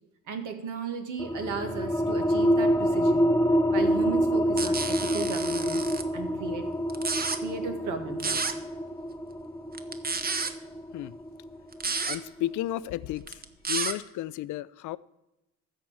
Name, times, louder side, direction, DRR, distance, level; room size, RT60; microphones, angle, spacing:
voice 1, 0.3-3.3 3.7-5.8 6.1-6.6 7.4-8.4, right 5 dB, 85° right, 6 dB, 1.8 m, -35 dB
sound 1, 1.2-12.4, equal, 10° left, 0.6 m, -27 dB
sound 2, 4.6-6.0 6.9-7.4 8.2-8.5 9.7-10.5 11.7-12.2 13.2-13.9, right 4 dB, 30° right, 1.0 m, -30 dB
voice 2, 12.1-13.4 13.7-15.0, left 14 dB, 75° left, 17 dB, 0.5 m, -33 dB
13.5 x 4.6 x 8.7 m, 0.93 s
cardioid pair, 90°, 30 cm